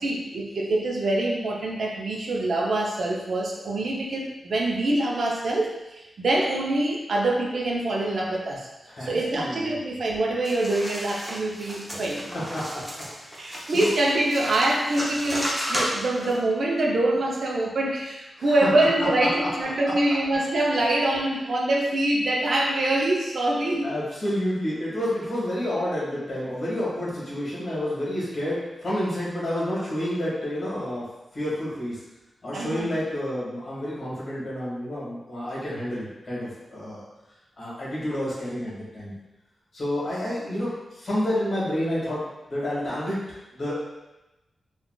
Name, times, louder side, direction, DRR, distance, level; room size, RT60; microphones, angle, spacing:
voice 1, 0.0-8.7 9.0-12.5 13.4-23.9 32.5-32.9, right 1 dB, 65° right, -1 dB, 0.5 m, -25 dB
voice 2, 8.9-9.7 12.3-13.9 18.4-18.7 19.0-19.5 23.8-32.0 32.4-37.0 37.6-39.1 39.7-42.2 42.5-43.9, left 1 dB, 55° left, -8 dB, 1.4 m, -29 dB
sound 1, 10.4-16.4, equal, 5° right, 0.7 m, -33 dB
3.7 x 2.3 x 2.2 m, 1.0 s
wide cardioid pair, 100°, 0 cm